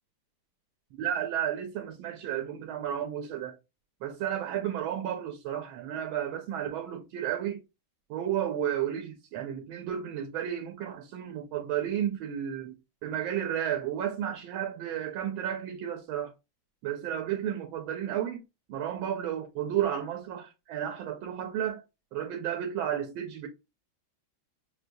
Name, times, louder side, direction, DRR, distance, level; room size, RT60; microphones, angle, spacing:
voice 1, 1.0-3.6 4.0-7.6 8.1-16.3 16.8-18.4 18.7-21.8 22.1-23.5, right 10 dB, 90° right, 1.5 m, -32 dB
6.2 x 2.2 x 2.6 m
omnidirectional pair, 2.2 m